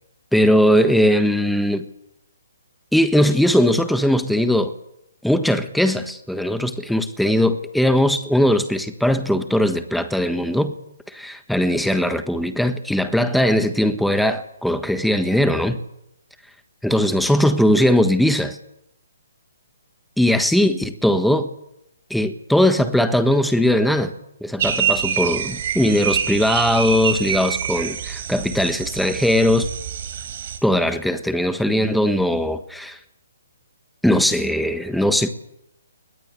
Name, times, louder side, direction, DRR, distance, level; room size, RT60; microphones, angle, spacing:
voice 1, 0.3-1.8 2.9-4.7 5.2-10.7 11.1-15.8 16.8-18.6 20.2-21.5 22.1-24.1 24.4-29.7 30.6-33.0 34.0-35.3, left 1 dB, ahead, 1.5 m, -19 dB
sound 1, 24.6-30.6, right 8 dB, 50° right, 5.2 m, -26 dB
23.0 x 20.5 x 8.2 m
hypercardioid pair, 140°, 0 cm